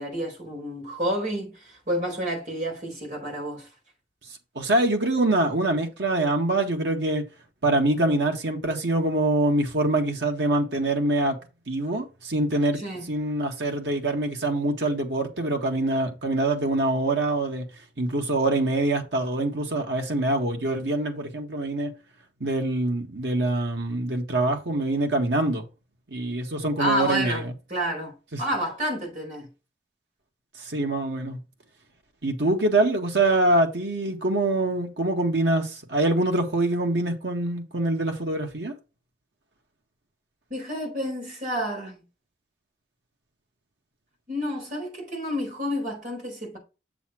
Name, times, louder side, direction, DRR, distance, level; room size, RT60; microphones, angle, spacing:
voice 1, 0.0-3.7 12.7-13.1 26.8-29.5 40.5-42.0 44.3-46.6, equal, 45° right, 4.4 m, -30 dB
voice 2, 4.5-7.2 7.6-11.4 11.7-12.8 13.1-17.6 18.0-21.9 22.4-25.6 26.1-27.5 28.3-28.4 30.6-31.4 32.2-38.7, right 2 dB, 90° right, 1.7 m, -24 dB
7.4 x 6.9 x 3.0 m
head